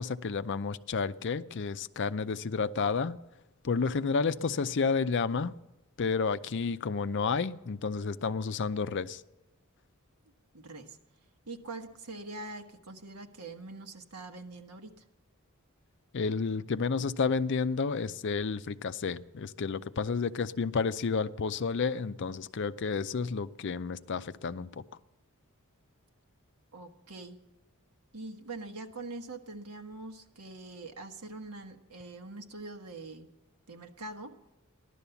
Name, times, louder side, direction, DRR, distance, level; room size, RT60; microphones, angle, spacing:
voice 1, 0.0-3.2 3.6-5.5 6.0-9.2 16.1-24.8, left 5 dB, 55° left, 0.5 m, -31 dB
voice 2, 10.5-11.0 11.5-15.0 26.7-27.4 28.1-33.3 33.7-34.4, right 2 dB, 90° right, 1.4 m, -43 dB
15.5 x 11.5 x 7.0 m
head